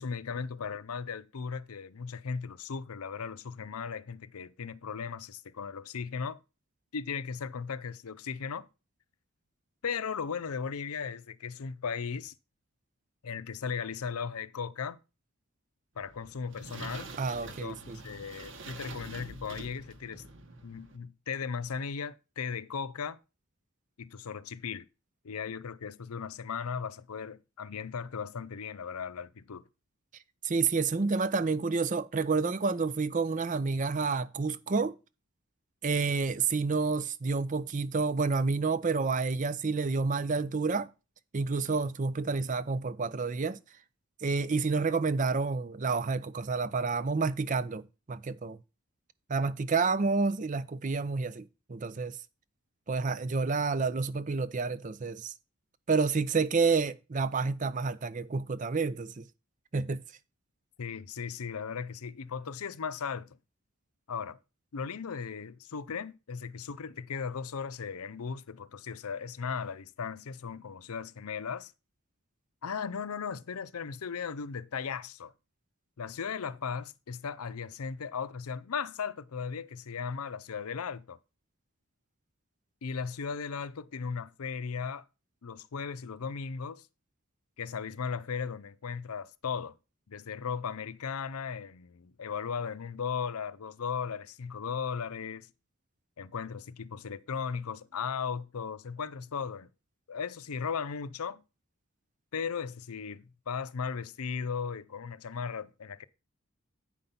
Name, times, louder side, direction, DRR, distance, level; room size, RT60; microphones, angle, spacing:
voice 1, 0.0-6.4 6.9-8.7 9.8-12.3 13.2-15.0 16.0-17.1 17.4-17.8 18.0-20.2 20.6-23.2 24.0-24.9 25.2-29.6 60.8-63.4 64.1-64.4 64.7-71.7 72.6-75.3 76.0-81.2 82.8-85.0 85.4-86.9 87.6-89.7 90.1-95.5 96.2-99.7 100.1-101.4 102.3-106.1, left 6 dB, 85° left, 0.6 m, -37 dB
sound 1, 16.0-21.0, right 2 dB, 55° right, 1.1 m, -45 dB
voice 2, 17.2-18.0 30.4-35.0 35.8-40.9 41.3-43.6 44.2-48.6 49.3-51.4 51.7-52.2 52.9-55.3 55.9-59.2 59.7-60.0, right 4 dB, 35° right, 0.5 m, -29 dB
8.9 x 5.4 x 5.7 m
head